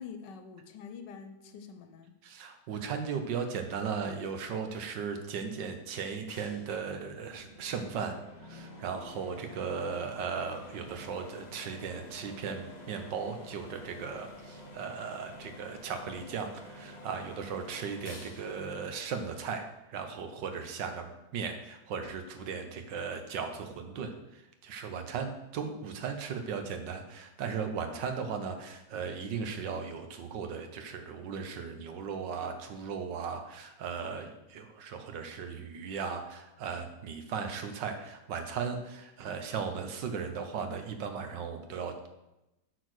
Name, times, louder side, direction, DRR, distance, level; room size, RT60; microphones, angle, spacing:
voice 1, 0.0-2.1, left 6 dB, 75° left, 7 dB, 1.4 m, -46 dB
voice 2, 2.2-42.1, right 6 dB, 75° right, 6 dB, 1.6 m, -37 dB
sound 1, 6.3-19.8, left 1 dB, 30° left, 0.9 m, -49 dB
8.0 x 4.6 x 6.4 m, 0.94 s
omnidirectional pair, 2.0 m